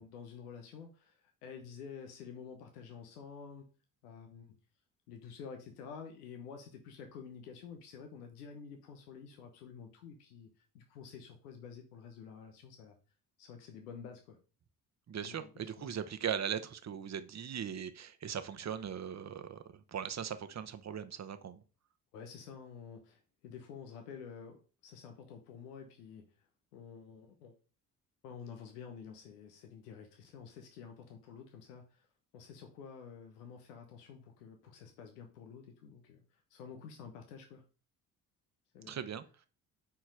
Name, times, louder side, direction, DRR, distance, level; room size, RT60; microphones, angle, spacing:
voice 1, 0.0-3.7 4.0-4.5 5.1-10.5 10.7-13.0 13.4-14.4 15.2-15.9 22.1-27.5 28.2-32.1 32.3-36.2 36.5-37.6 38.7-39.0, left 6 dB, 80° left, 1.2 m, -50 dB
voice 2, 15.1-21.6 38.9-39.2, right 8 dB, 35° right, 1.1 m, -39 dB
8.8 x 4.7 x 4.8 m
hypercardioid pair, 50°, 46 cm